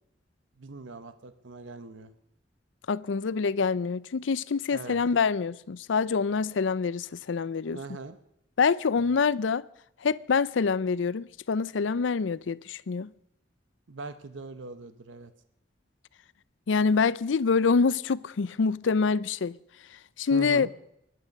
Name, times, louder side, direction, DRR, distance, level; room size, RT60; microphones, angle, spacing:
voice 1, 0.6-2.1 4.7-5.0 7.7-8.2 9.0-9.1 13.9-15.3 20.3-20.7, right 3 dB, 90° right, 0.9 m, -41 dB
voice 2, 2.9-7.8 8.6-9.6 10.0-13.1 16.7-19.6 20.2-20.7, left 5 dB, 80° left, 0.5 m, -26 dB
23.0 x 9.5 x 6.5 m
head